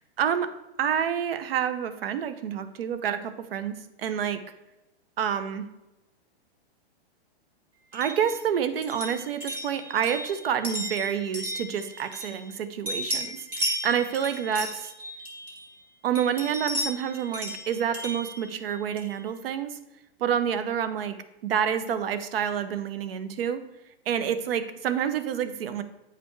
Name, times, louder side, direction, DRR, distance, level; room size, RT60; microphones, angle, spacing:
voice 1, 0.2-4.4 5.2-5.7 7.9-14.9 16.0-19.8 20.2-21.2 21.4-23.6 24.1-25.8, right 8 dB, 65° right, 12 dB, 0.8 m, -28 dB
sound 1, 7.9-12.6 12.9-15.8 16.2-19.2, equal, 5° right, 0.4 m, -35 dB
9.0 x 5.0 x 4.5 m, 0.98 s
supercardioid pair, 170°, 31 cm